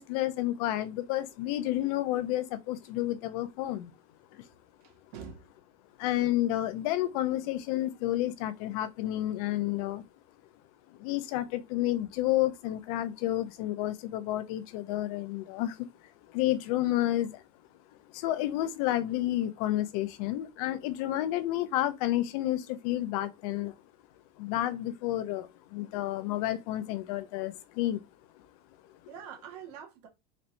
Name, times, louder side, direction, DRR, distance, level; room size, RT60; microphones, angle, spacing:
voice 1, 0.0-3.9 4.3-4.4 6.0-10.0 10.9-15.9 16.3-17.4 18.1-23.7 24.4-28.0, left 14 dB, 65° left, 0.6 m, -30 dB
voice 2, 4.8-5.5 29.1-30.1, right 7 dB, 75° right, 1.7 m, -45 dB
4.3 x 3.1 x 2.6 m
supercardioid pair, 115°, 21 cm